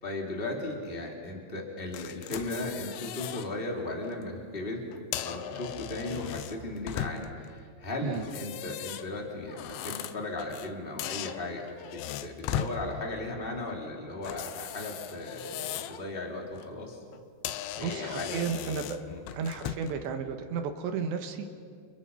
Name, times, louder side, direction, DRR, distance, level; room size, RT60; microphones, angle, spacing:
voice 1, 0.0-4.8 5.1-17.0 17.7-18.5 19.1-19.2, left 2 dB, 15° left, 0 dB, 2.9 m, -36 dB
sound 1, 1.9-3.5 3.9-4.1 4.9-7.5 8.1-10.7 11.0-12.8 14.2-16.0 16.4-16.7 17.1-17.2 17.4-20.0, left 11 dB, 80° left, 3.3 m, -38 dB
voice 2, 17.8-19.0 19.3-21.5, right 6 dB, 70° right, 6 dB, 3.2 m, -33 dB
30.0 x 29.5 x 5.6 m, 2.3 s
omnidirectional pair, 5.7 m